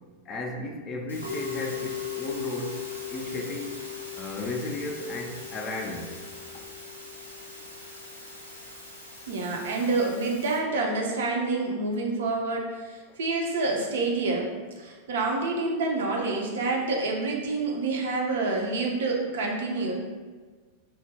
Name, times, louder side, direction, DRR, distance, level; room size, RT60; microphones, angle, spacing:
voice 1, 0.3-3.8 4.1-6.2 13.1-13.2, left 2 dB, 30° left, 1 dB, 0.4 m, -35 dB
Musical instrument, 1.1-10.6, left 6 dB, 85° left, 0.7 m, -38 dB
voice 2, 9.3-20.0, right 3 dB, 60° right, 0 dB, 0.4 m, -28 dB
2.2 x 2.0 x 3.3 m, 1.4 s
figure-of-eight pair, 90°, 0 cm